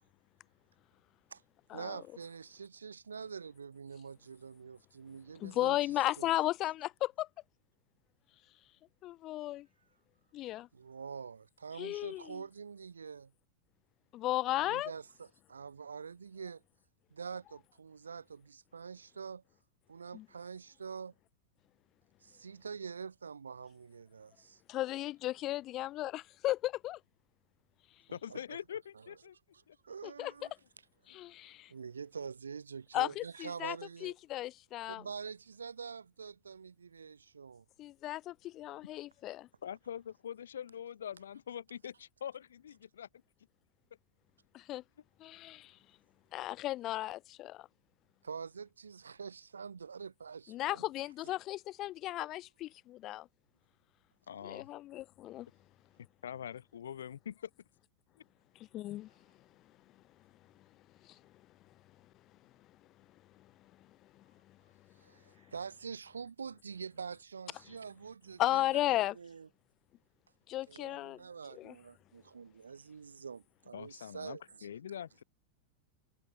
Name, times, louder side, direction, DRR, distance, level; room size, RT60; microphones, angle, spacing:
voice 1, 1.7-6.3 10.7-13.3 14.6-16.6 17.1-19.4 19.9-21.1 22.2-24.6 28.1-28.6 29.1-29.2 29.8-30.5 31.1-31.2 31.7-34.1 34.8-37.6 48.2-50.9 64.9-69.5 70.7-74.7, right 6 dB, 75° right, 0.6 m, -46 dB
voice 2, 5.4-7.3 9.0-9.7 10.3-10.7 11.8-12.4 14.1-14.9 20.1-20.2 24.7-27.0 30.0-30.3 31.1-31.7 32.9-33.8 34.0-35.0 37.8-39.5 44.5-44.8 45.2-45.8 46.3-47.7 50.5-53.3 54.4-55.5 58.7-59.1 61.0-61.2 68.4-69.2 70.5-71.2 71.5-71.7, left 15 dB, 35° left, 0.9 m, -35 dB
voice 3, 28.1-29.3 29.7-29.8 31.1-31.2 39.6-43.1 54.3-54.7 56.2-57.5 73.7-75.2, left 9 dB, 65° left, 1.6 m, -44 dB
figure-of-eight pair, 90°, 0 cm